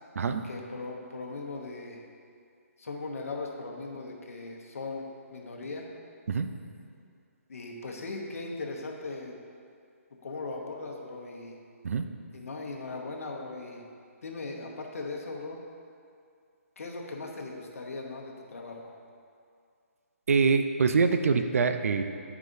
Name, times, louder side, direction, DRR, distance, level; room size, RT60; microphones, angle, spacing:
voice 1, 0.4-2.0 2.8-5.0 5.3-5.9 7.5-9.4 10.2-11.5 12.3-13.9 14.2-15.6 16.8-18.9, left 3 dB, 70° left, 0 dB, 1.0 m, -38 dB
voice 2, 20.3-22.0, right 5 dB, 70° right, 8 dB, 0.5 m, -24 dB
9.5 x 4.8 x 2.6 m, 2.3 s
hypercardioid pair, 155°, 8 cm